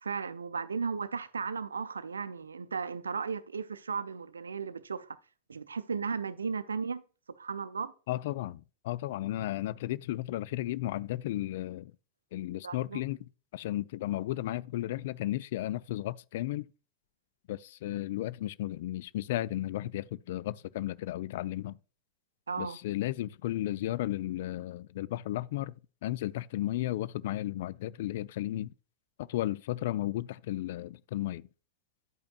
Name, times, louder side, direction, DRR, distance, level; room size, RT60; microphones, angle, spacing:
voice 1, 0.0-5.2 5.5-7.0 7.4-7.9 12.6-13.0 22.5-22.8, right 5 dB, 75° right, 0.5 m, -35 dB
voice 2, 8.1-11.9 12.3-13.2 13.5-16.7 17.5-21.8 22.6-25.7 26.0-28.7 29.2-31.5, left 14 dB, 55° left, 0.4 m, -34 dB
11.0 x 8.4 x 2.4 m
figure-of-eight pair, 90°, 0 cm